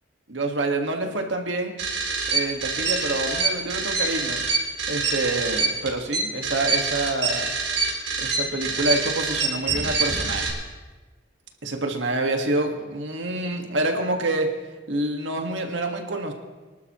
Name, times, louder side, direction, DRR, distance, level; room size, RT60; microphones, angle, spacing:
voice 1, 0.3-1.8 2.3-4.4 4.9-7.5 8.2-10.6 11.6-14.5 14.9-16.3, right 2 dB, 85° right, 3 dB, 1.8 m, -27 dB
sound 1, 1.8-10.5, right 4 dB, 65° right, 3.5 m, -25 dB
25.0 x 12.0 x 3.1 m, 1.3 s
head